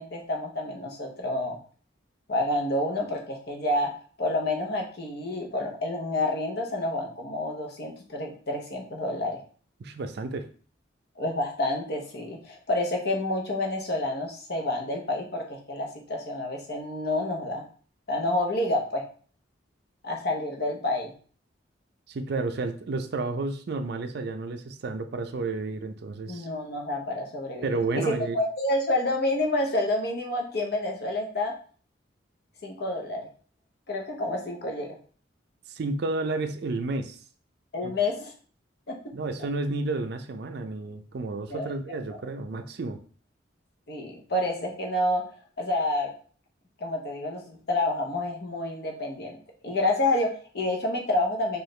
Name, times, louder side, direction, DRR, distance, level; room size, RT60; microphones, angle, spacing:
voice 1, 0.0-1.6 2.3-3.9 4.2-9.4 11.2-17.6 18.1-19.0 20.0-21.1 26.3-31.5 32.6-33.3 33.9-35.0 37.7-38.3 38.9-39.1 41.5-41.7 42.1-42.2 43.9-45.2 45.6-46.1 46.8-49.4 49.6-51.6, left 1 dB, 60° left, 1 dB, 0.9 m, -29 dB
voice 2, 9.8-10.5 22.1-26.5 27.6-28.4 35.7-37.2 37.8-37.9 39.1-43.0, right 3 dB, 60° right, 8 dB, 0.4 m, -31 dB
4.6 x 2.4 x 3.2 m, 0.43 s
head